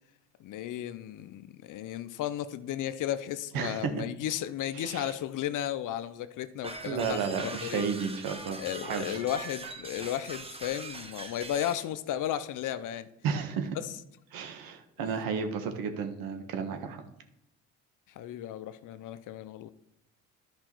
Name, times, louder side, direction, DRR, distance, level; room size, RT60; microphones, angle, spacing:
voice 1, 0.4-7.8 8.6-13.1 13.8-13.9 15.0-15.2 18.2-19.7, left 11 dB, 60° left, 13 dB, 0.7 m, -34 dB
voice 2, 3.5-3.9 4.7-5.1 6.8-9.2 13.2-13.8 14.3-17.0, right 6 dB, 70° right, 6 dB, 1.5 m, -33 dB
sound 1, 6.6-11.9, right 2 dB, 15° right, 1.1 m, -42 dB
11.0 x 5.1 x 4.5 m, 0.83 s
supercardioid pair, 90°, 35 cm